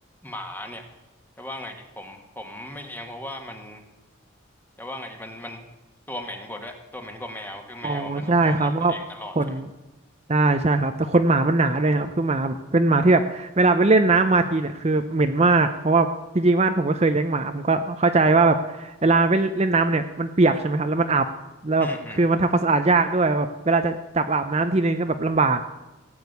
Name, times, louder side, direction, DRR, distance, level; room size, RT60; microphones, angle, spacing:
voice 1, 0.2-0.8 1.4-3.8 4.8-5.6 6.1-9.6 21.8-22.2, left 1 dB, 10° left, 4 dB, 1.7 m, -37 dB
voice 2, 7.8-8.9 9.4-9.7 10.3-16.1 16.3-21.3 21.6-21.9 22.2-25.6, right 3 dB, 30° right, 7 dB, 0.6 m, -20 dB
16.5 x 8.9 x 8.1 m, 1.1 s
head